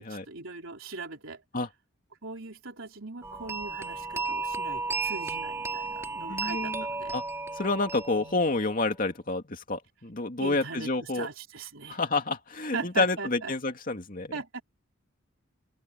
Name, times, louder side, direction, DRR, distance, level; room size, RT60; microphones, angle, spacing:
voice 1, 0.0-1.4 2.2-7.2 10.4-12.0 12.7-13.5 14.3-14.6, right 4 dB, 80° right, 3.4 m, -39 dB
sound 1, 3.2-8.9, right 3 dB, 15° right, 3.7 m, -34 dB
voice 2, 6.3-6.8 7.1-7.2 7.6-11.3 11.9-14.3, left 3 dB, 45° left, 2.5 m, -29 dB
open air
head